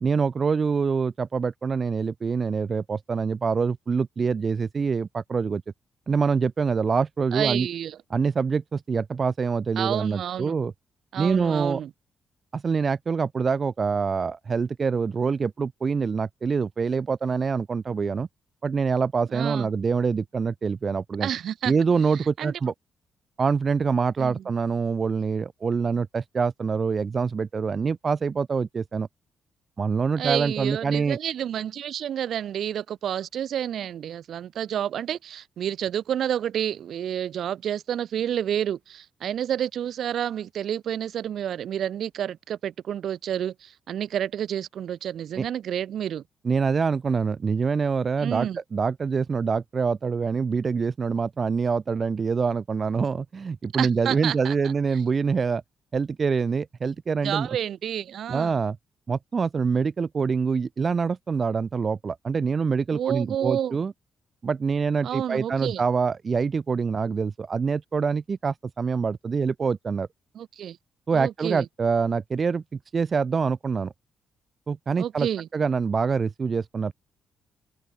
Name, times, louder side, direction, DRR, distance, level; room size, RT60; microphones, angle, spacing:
voice 1, 0.0-5.6 6.1-7.7 8.1-10.7 11.2-11.8 12.5-18.3 18.6-21.3 21.6-22.7 23.4-29.1 29.8-31.2 45.4-45.5 46.4-55.6 55.9-57.5 58.3-58.8 59.1-63.9 64.4-70.1 71.1-72.6 72.9-73.9 74.7-76.9, right 5 dB, 45° right, 0.5 m, -25 dB
voice 2, 7.3-8.0 9.8-10.6 11.1-11.9 19.3-19.7 21.2-21.7 22.1-22.6 24.2-24.4 30.2-46.2 48.2-48.6 53.8-54.5 54.9-55.0 57.2-58.6 62.9-63.8 65.0-65.8 70.3-70.8 71.1-71.7 75.0-75.5, right 10 dB, 70° right, 2.2 m, -29 dB
supercardioid pair, 55°, 0 cm